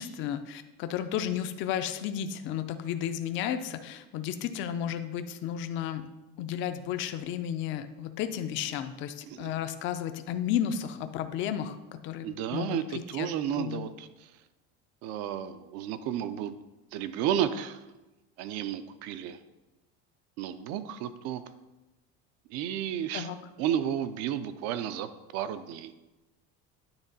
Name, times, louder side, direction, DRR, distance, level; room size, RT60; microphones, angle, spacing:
voice 1, 0.0-6.1 6.4-13.3 13.6-13.8 23.1-23.4, left 9 dB, 40° left, 9 dB, 0.4 m, -33 dB
voice 2, 9.3-9.6 12.2-14.1 15.0-16.5 16.9-17.8 18.4-19.4 20.4-21.4 22.5-23.3 23.6-25.9, right 10 dB, 60° right, 11 dB, 0.5 m, -32 dB
9.8 x 3.6 x 4.0 m, 1.0 s
cardioid pair, 170°, 30 cm